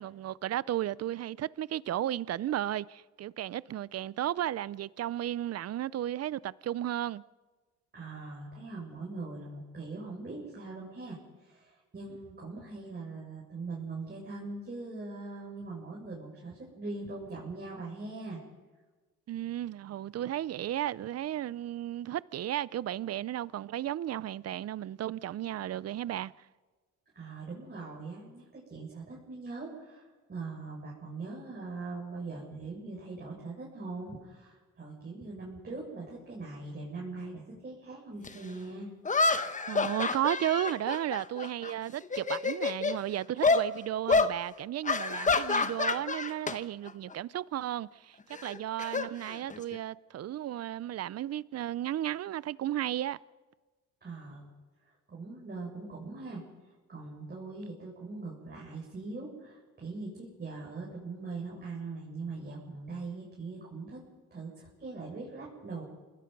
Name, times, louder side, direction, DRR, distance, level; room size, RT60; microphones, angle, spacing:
voice 1, 0.0-7.2 19.3-26.3 39.7-53.2, right 12 dB, 55° right, 0.6 m, -34 dB
voice 2, 7.9-11.2 11.4-18.4 27.1-30.0 30.3-38.9 54.0-54.5 55.1-56.4 56.9-64.0 64.3-65.8, right 3 dB, 35° right, 7.4 m, -41 dB
sound 1, 38.2-38.3 39.0-41.7 42.0-43.0 43.4-43.7 44.1-44.3 44.8-46.6 46.9-47.1 48.3-49.8, left 4 dB, 25° left, 1.2 m, -28 dB
27.5 x 20.5 x 5.4 m
cardioid pair, 90°, 30 cm